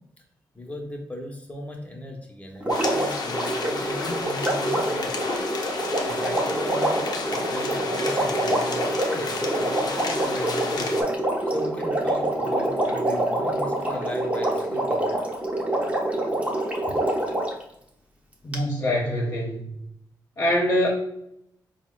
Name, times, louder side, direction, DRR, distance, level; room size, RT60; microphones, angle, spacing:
voice 1, 0.5-5.3 6.0-7.0 7.3-11.0 11.5-15.1, left 1 dB, 20° left, 1 dB, 1.0 m, -37 dB
Water, 2.6-17.6 18.5-18.6, right 1 dB, 20° right, 0.9 m, -26 dB
sound 1, 2.7-11.0, left 3 dB, 60° left, 0.6 m, -31 dB
voice 2, 18.4-19.7 20.4-20.9, left 1 dB, 45° left, -3 dB, 1.0 m, -24 dB
4.1 x 2.2 x 3.8 m, 0.78 s
cardioid pair, 70°, 7 cm